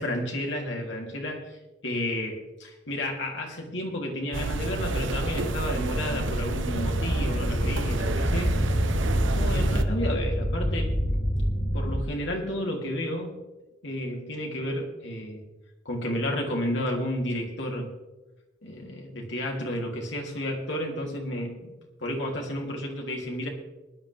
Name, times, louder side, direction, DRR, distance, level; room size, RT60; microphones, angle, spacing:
voice 1, 0.0-8.5 9.2-10.9 11.7-13.3 13.8-15.4 15.8-17.9 18.6-21.7 22.0-23.5, left 1 dB, 70° left, 0 dB, 3.3 m, -32 dB
sound 1, 4.3-9.8, right 2 dB, 80° right, 1.0 m, -28 dB
sound 2, 6.7-12.0, equal, 50° left, 4.0 m, -27 dB
21.0 x 11.0 x 3.6 m, 1.1 s
head